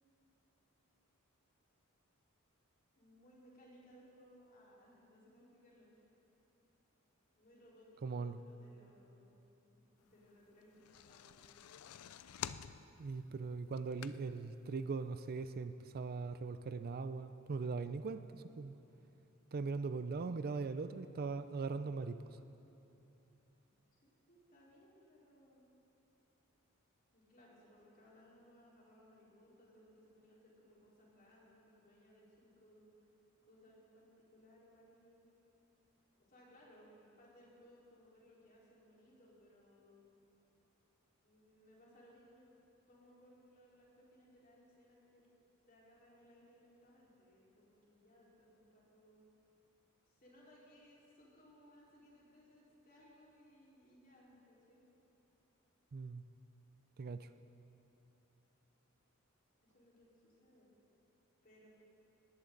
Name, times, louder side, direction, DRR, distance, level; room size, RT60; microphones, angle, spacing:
voice 1, 3.0-6.1 7.4-9.4 9.7-11.4 23.9-25.7 27.1-32.9 33.4-35.3 36.3-40.0 41.2-42.5 42.9-45.3 45.7-49.3 50.0-54.8 59.6-60.7 61.4-61.7, equal, 40° left, -6 dB, 4.3 m, -64 dB
voice 2, 8.0-8.4 13.0-18.8 19.5-22.2 55.9-56.3 57.0-57.3, right 4 dB, 45° right, 11 dB, 0.4 m, -40 dB
sound 1, 10.6-14.5 15.0-15.1 15.4-15.5, left 9 dB, 85° left, 0.4 m, -48 dB
19.5 x 18.0 x 3.9 m, 2.9 s
head